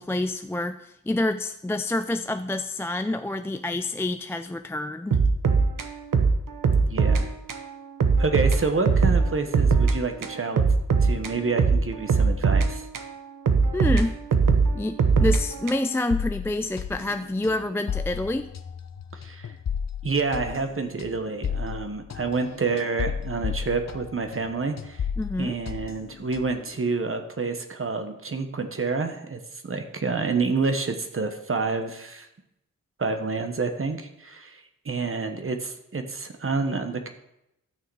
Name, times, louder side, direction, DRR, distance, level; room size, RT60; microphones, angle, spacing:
voice 1, 0.0-5.2 13.7-14.2 14.7-18.5 25.2-25.6, left 2 dB, 10° left, 8 dB, 0.3 m, -28 dB
sound 1, 5.1-7.2 7.5-7.6 8.0-10.0 10.2-13.1 13.5-16.0, right 5 dB, 75° right, 1.0 m, -21 dB
voice 2, 6.8-7.3 8.2-10.6 11.0-12.9 19.1-19.5 20.0-25.1 25.4-32.3 33.0-37.1, right 4 dB, 40° right, 6 dB, 1.1 m, -28 dB
sound 2, 16.1-24.5 24.8-26.7, left 7 dB, 55° left, 0.8 m, -33 dB
12.5 x 6.5 x 4.7 m, 0.83 s
wide cardioid pair, 85°, 32 cm